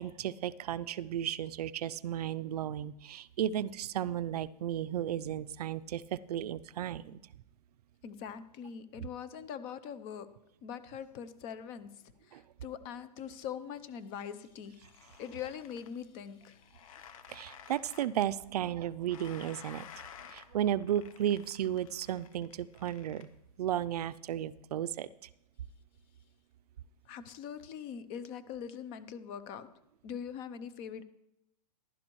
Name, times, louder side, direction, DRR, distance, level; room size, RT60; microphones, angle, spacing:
voice 1, 0.0-7.2 9.0-9.1 12.3-12.4 17.3-20.0 20.3-23.3 23.6-25.1, right 11 dB, 65° right, 17 dB, 0.5 m, -34 dB
voice 2, 8.0-10.3 10.6-11.9 12.3-16.6 27.1-29.7 30.0-31.0, left 8 dB, 25° left, 14 dB, 0.6 m, -42 dB
sound 1, 14.5-24.1, left 8 dB, 55° left, 1.1 m, -54 dB
15.0 x 11.5 x 3.1 m, 0.81 s
hypercardioid pair, 155°, 21 cm